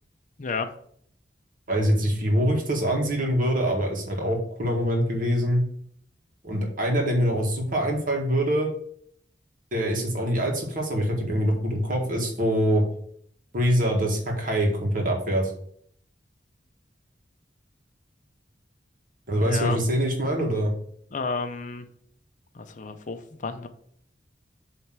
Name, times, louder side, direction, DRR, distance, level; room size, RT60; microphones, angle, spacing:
voice 1, 1.7-5.6 6.4-8.7 9.7-12.8 13.5-15.5 19.3-20.7, equal, 50° right, 1 dB, 1.8 m, -24 dB
voice 2, 19.4-19.8 21.1-21.8 22.5-23.7, left 4 dB, 45° left, 8 dB, 0.7 m, -31 dB
7.6 x 3.3 x 6.1 m, 0.64 s
head